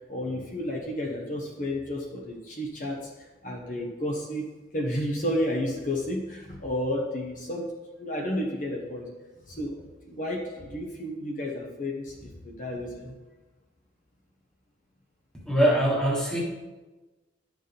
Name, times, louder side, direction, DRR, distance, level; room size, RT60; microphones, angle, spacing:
voice 1, 0.0-7.7 8.0-9.1 9.5-13.2, left 1 dB, 45° left, -1 dB, 1.2 m, -32 dB
voice 2, 15.4-16.4, right 1 dB, 5° left, -4 dB, 1.5 m, -22 dB
11.5 x 6.5 x 3.5 m, 1.2 s
head